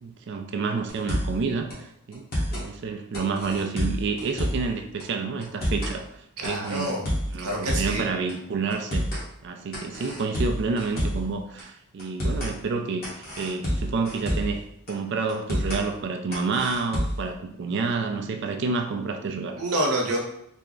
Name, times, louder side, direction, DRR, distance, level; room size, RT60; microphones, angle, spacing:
voice 1, 0.0-6.0 6.4-9.1 9.4-19.6, right 4 dB, 55° right, 5 dB, 0.3 m, -29 dB
sound 1, 0.9-1.4 1.7-1.8 2.1-2.7 3.1-4.7 5.0-5.1 5.4-6.0 6.4-8.0 8.3-8.4 8.7-9.2 9.7-11.3 11.6-11.7 12.0-12.5 13.0-14.6 14.9-15.0 15.3-15.8 16.3-17.3, equal, 45° left, 1.1 m, -28 dB
voice 2, 6.4-7.1 7.4-8.1 19.6-20.2, right 1 dB, 90° right, 0 dB, 0.8 m, -27 dB
3.4 x 2.0 x 3.7 m, 0.78 s
head